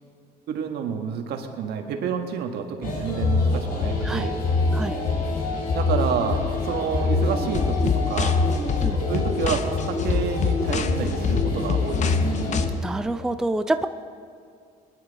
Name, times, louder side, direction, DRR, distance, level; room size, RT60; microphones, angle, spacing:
voice 1, 0.5-4.4 5.7-8.5 9.1-12.1, right 6 dB, 75° right, 5 dB, 1.4 m, -29 dB
sound 1, 2.8-12.7, left 3 dB, 60° left, 2.6 m, -25 dB
sound 2, 7.5-12.6, left 7 dB, 45° left, 0.8 m, -27 dB
voice 2, 12.8-13.9, right 2 dB, 5° right, 9 dB, 0.4 m, -26 dB
20.5 x 10.5 x 4.0 m, 2.2 s
cardioid pair, 110°, 17 cm